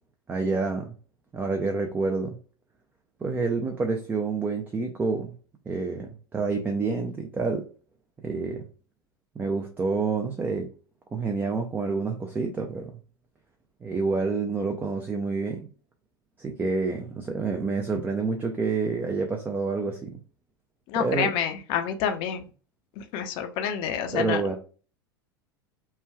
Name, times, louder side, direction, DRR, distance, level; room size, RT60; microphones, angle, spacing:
voice 1, 0.3-0.9 1.3-2.4 3.2-5.3 5.7-7.6 8.2-8.6 9.4-10.7 11.1-12.9 13.8-15.7 16.4-20.2 20.9-21.3 24.1-24.6, right 4 dB, 15° right, 2 dB, 0.4 m, -28 dB
voice 2, 20.9-22.5 23.0-24.4, left 8 dB, 45° left, 7 dB, 0.5 m, -28 dB
3.2 x 2.2 x 2.2 m, 0.37 s
figure-of-eight pair, 80°, 12 cm